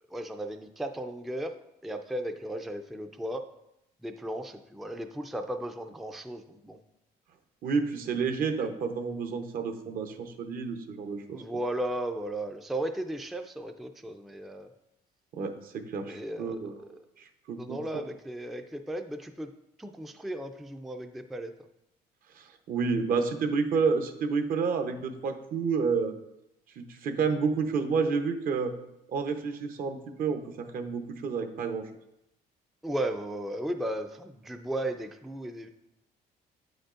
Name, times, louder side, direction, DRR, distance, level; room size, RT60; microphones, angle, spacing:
voice 1, 0.1-1.5 1.8-3.4 4.0-6.8 11.3-14.7 16.0-16.6 17.6-19.5 19.8-21.5 32.8-35.7, right 1 dB, ahead, 6 dB, 0.3 m, -35 dB
voice 2, 7.6-11.4 15.3-16.7 17.2-17.8 22.3-26.1 26.8-28.8 29.1-31.9, right 5 dB, 60° right, 7 dB, 0.7 m, -30 dB
8.1 x 5.2 x 2.5 m, 0.85 s
cardioid pair, 110°, 17 cm